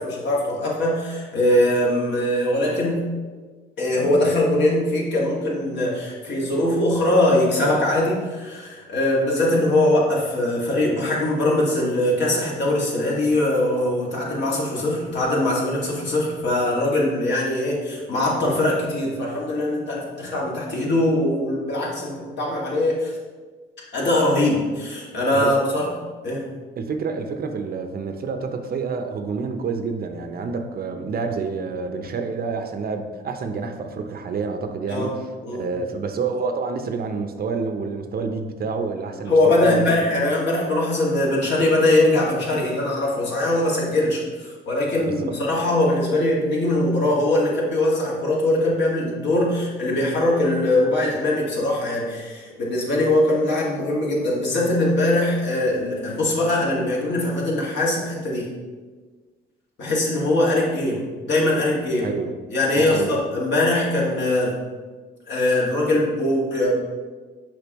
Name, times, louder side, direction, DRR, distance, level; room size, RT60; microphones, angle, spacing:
voice 1, 0.0-3.1 3.8-23.2 23.9-25.9 26.2-26.4 34.9-35.1 35.4-35.7 39.3-58.5 59.8-62.1 62.5-64.6 65.3-66.8, left 1 dB, 60° left, -4 dB, 2.0 m, -21 dB
voice 2, 25.3-25.6 26.8-35.1 35.5-39.9 45.0-45.4 62.0-62.3 62.7-63.2, right 4 dB, 50° right, 6 dB, 0.6 m, -28 dB
6.9 x 5.1 x 3.0 m, 1.4 s
cardioid pair, 90°, 20 cm